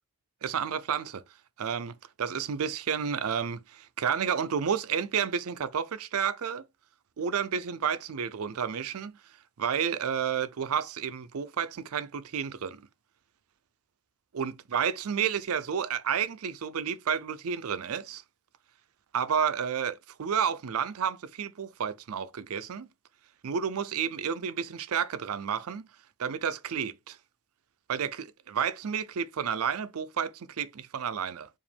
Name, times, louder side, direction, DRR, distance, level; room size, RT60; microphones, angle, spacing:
voice 1, 0.4-1.2 1.6-6.6 7.2-9.1 9.6-12.8 14.3-18.2 19.1-22.9 23.4-25.9 26.2-27.2 27.9-31.5, right 7 dB, 75° right, 0.5 m, -31 dB
4.9 x 2.5 x 3.4 m
head